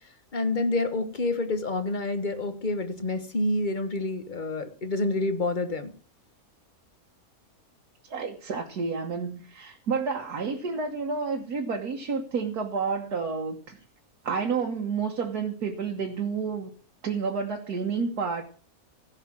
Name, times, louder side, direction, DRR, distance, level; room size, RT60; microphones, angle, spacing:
voice 1, 0.3-5.9, left 2 dB, 35° left, 9 dB, 1.4 m, -28 dB
voice 2, 8.1-13.8 14.2-16.7 17.0-18.4, right 5 dB, 85° right, 2 dB, 1.9 m, -30 dB
16.5 x 5.7 x 7.5 m, 0.42 s
omnidirectional pair, 1.6 m